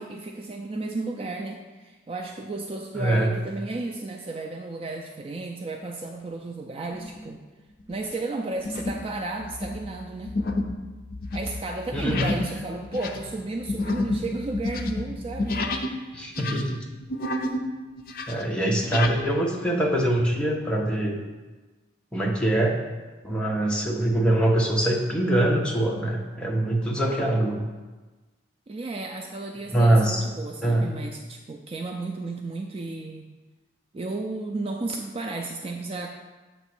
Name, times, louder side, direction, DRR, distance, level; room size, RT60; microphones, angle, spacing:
voice 1, 0.0-7.4 7.9-10.3 11.3-16.1 28.7-33.3 33.9-36.1, right 2 dB, 30° right, 2 dB, 0.3 m, -33 dB
voice 2, 2.9-3.3 11.9-12.3 16.1-16.8 18.3-21.2 22.1-22.8 23.2-27.6 29.7-30.2 30.6-30.9, right 1 dB, 5° left, -2 dB, 0.7 m, -23 dB
sound 1, 6.9-7.3 7.8-8.0 8.6-9.1 9.4-16.0 16.3-17.7 18.0-19.2, left 2 dB, 50° left, 0.5 m, -30 dB
7.1 x 3.0 x 6.0 m, 1.3 s
head